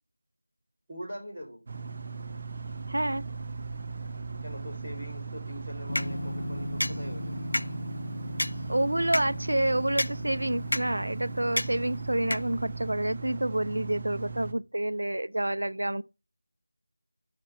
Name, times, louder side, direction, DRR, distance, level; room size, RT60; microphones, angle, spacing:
voice 1, 0.9-1.6 4.4-7.4, equal, 5° right, 3.6 m, -42 dB
sound 1, 1.7-14.5, right 4 dB, 30° right, 0.5 m, -38 dB
voice 2, 2.9-3.2 8.7-16.0, right 1 dB, 90° right, 0.5 m, -28 dB
sound 2, 5.9-12.9, left 1 dB, 85° left, 0.3 m, -34 dB
5.9 x 5.6 x 5.6 m
figure-of-eight pair, 175°, 0 cm